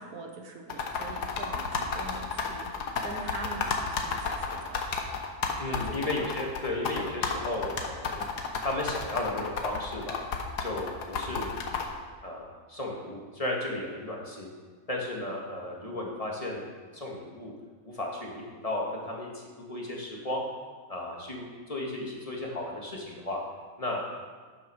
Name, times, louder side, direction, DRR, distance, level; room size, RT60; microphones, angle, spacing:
voice 1, 0.0-4.9 5.7-6.0, right 2 dB, 70° right, 2 dB, 1.7 m, -43 dB
sound 1, 0.7-11.9, left 5 dB, 85° left, 1.7 m, -31 dB
voice 2, 5.6-8.2 8.6-10.2 10.6-11.7 12.2-14.5 14.9-17.5 17.8-19.4 19.7-20.4 20.9-23.4 23.8-24.2, left 1 dB, 20° left, -2 dB, 2.0 m, -34 dB
12.0 x 9.4 x 4.8 m, 1.5 s
omnidirectional pair, 1.7 m